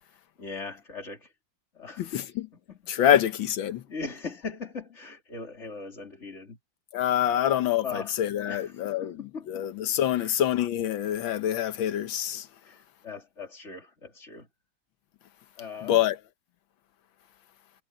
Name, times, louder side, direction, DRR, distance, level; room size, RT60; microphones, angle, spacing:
voice 1, 0.4-1.3 1.7-2.2 2.5-2.9 3.9-6.6 7.3-8.2 8.5-9.7 10.1-10.4 12.6-14.5 15.6-16.1, left 4 dB, 35° left, 3.3 m, -40 dB
voice 2, 2.0-2.5 2.9-3.8 6.9-9.2 9.5-12.5 15.8-16.2, left 11 dB, 80° left, 1.8 m, -26 dB
omnidirectional pair, 2.1 m